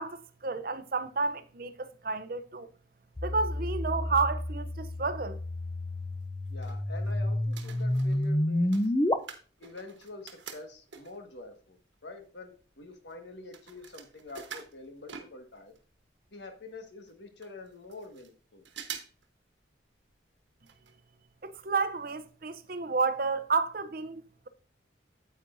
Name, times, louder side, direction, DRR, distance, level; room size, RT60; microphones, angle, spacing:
voice 1, 0.0-2.7 3.2-5.4 21.4-24.2, right 4 dB, 50° right, 0.6 m, -31 dB
sound 1, 3.2-9.1, left 1 dB, 20° left, 0.5 m, -30 dB
sound 2, 6.2-7.1 7.4-11.3 11.9-12.0 12.2-15.8 16.1-16.2 16.4-16.5 17.1-17.2 17.4-18.3 18.6-19.3 19.6-19.7 20.6-20.9 21.2-21.3 21.8-21.9 22.3-22.4, right 7 dB, 80° right, 1.2 m, -46 dB
voice 2, 6.5-8.7 9.6-11.8 12.0-15.7 16.3-18.6, left 2 dB, 70° left, 1.6 m, -46 dB
9.4 x 8.2 x 2.6 m
head